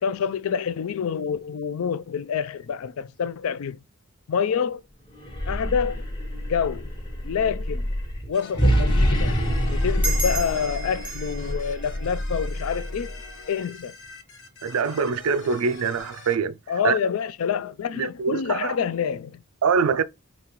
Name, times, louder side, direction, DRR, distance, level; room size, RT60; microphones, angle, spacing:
voice 1, 0.0-3.8 4.3-4.8 5.5-6.1 6.5-6.9 7.2-7.9 8.3-9.4 9.7-13.1 13.5-13.9 16.7-19.4, left 7 dB, 70° left, 0.4 m, -27 dB
sound 1, 5.1-13.3, equal, 20° left, 0.9 m, -26 dB
sound 2, 8.3-16.4, left 4 dB, 55° left, 1.3 m, -45 dB
sound 3, 10.0-13.1, right 1 dB, 5° right, 0.7 m, -34 dB
voice 2, 14.6-16.6 16.8-17.0 18.0-18.7 19.6-20.0, right 6 dB, 75° right, 0.4 m, -24 dB
5.1 x 2.9 x 3.0 m
head